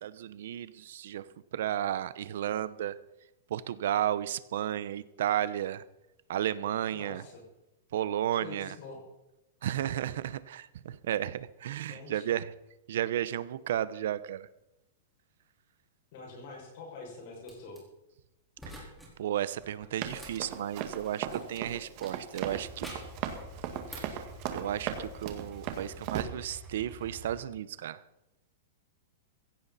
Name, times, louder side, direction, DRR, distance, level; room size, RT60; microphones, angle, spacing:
voice 1, 0.0-1.2 1.5-2.9 3.5-5.8 6.3-7.2 7.9-8.7 9.6-12.5 12.9-14.5 19.2-22.9 23.9-24.2 24.5-28.0, right 11 dB, 65° right, 16 dB, 0.9 m, -33 dB
voice 2, 6.9-7.4 8.4-9.0 11.9-12.3 16.1-17.8, left 3 dB, 50° left, -1 dB, 6.3 m, -45 dB
sound 1, 17.4-17.8 18.6-19.1 19.4-21.6 22.0-23.2 23.6-24.2, right 1 dB, ahead, 4.1 m, -49 dB
Run, 20.0-26.2, right 10 dB, 40° right, 1.9 m, -37 dB
sound 2, 22.4-27.4, right 1 dB, 20° right, 4.9 m, -48 dB
16.0 x 16.0 x 4.2 m, 0.91 s
supercardioid pair, 160°, 0 cm